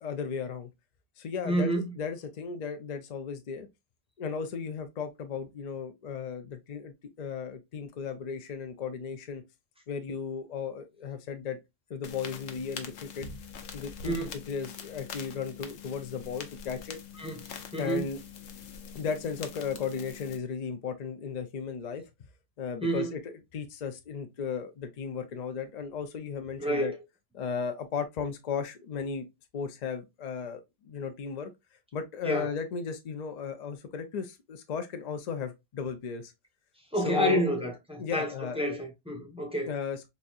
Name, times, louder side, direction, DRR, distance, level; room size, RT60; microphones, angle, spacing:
voice 1, 0.0-0.7 1.2-3.7 4.2-9.4 9.9-11.6 11.9-13.3 13.7-17.0 17.8-18.2 18.9-22.0 22.6-26.9 27.3-29.3 29.5-31.5 31.9-36.3 37.0-37.4 38.0-38.7 39.7-40.1, left 6 dB, 55° left, 0.5 m, -35 dB
voice 2, 1.4-1.9 14.0-14.3 17.2-17.4 17.7-18.0 22.8-23.1 26.6-26.9 32.2-32.5 36.9-38.3 38.6-39.7, equal, 5° right, 0.7 m, -29 dB
sound 1, 12.0-20.4, left 6 dB, 80° left, 1.0 m, -44 dB
4.2 x 2.6 x 2.3 m
omnidirectional pair, 1.2 m